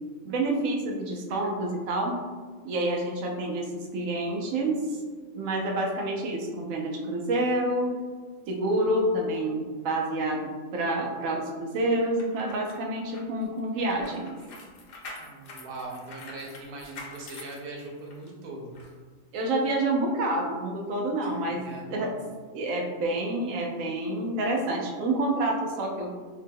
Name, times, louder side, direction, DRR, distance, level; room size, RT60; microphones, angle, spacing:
voice 1, 0.2-2.2 2.6-5.0 5.3-7.9 8.5-14.4 19.3-22.1 22.5-26.2, right 1 dB, 85° right, 0 dB, 1.0 m, -28 dB
sound 1, 12.0-18.3 18.7-18.9, left 2 dB, 70° left, 0.4 m, -45 dB
voice 2, 15.1-18.7 21.2-22.0, right 2 dB, 55° right, -1 dB, 0.7 m, -41 dB
2.8 x 2.1 x 3.4 m, 1.5 s
omnidirectional pair, 1.3 m